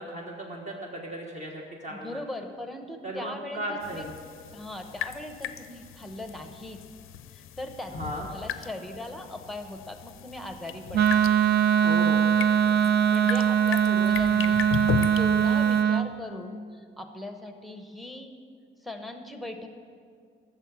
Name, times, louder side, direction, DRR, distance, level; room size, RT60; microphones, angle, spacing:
voice 1, 0.0-2.2 3.0-4.1 7.9-8.3 11.8-12.2, right 1 dB, 35° right, -1 dB, 1.2 m, -36 dB
voice 2, 1.9-4.0 4.5-6.8 7.3-11.0 12.7-14.7 15.2-18.3 18.8-19.7, left 1 dB, ahead, 6 dB, 0.8 m, -39 dB
sound 1, 3.8-15.8, left 10 dB, 80° left, 0.5 m, -37 dB
Wind instrument woodwind instrument, 10.9-16.1, right 8 dB, 50° right, 0.4 m, -22 dB
13.5 x 6.8 x 7.3 m, 2.2 s
wide cardioid pair, 175°, 21 cm